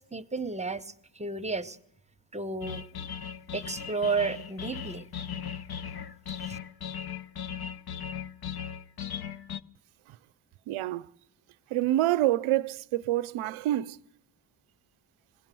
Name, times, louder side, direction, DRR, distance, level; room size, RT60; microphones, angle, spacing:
voice 1, 0.0-1.8 2.3-2.9 3.5-5.1 6.4-6.6, right 4 dB, 15° right, 0.8 m, -32 dB
sound 1, 2.6-9.6, left 8 dB, 50° left, 0.8 m, -38 dB
voice 2, 10.7-11.1 11.7-14.0, right 14 dB, 85° right, 0.7 m, -27 dB
20.5 x 16.5 x 7.6 m
cardioid pair, 80°, 48 cm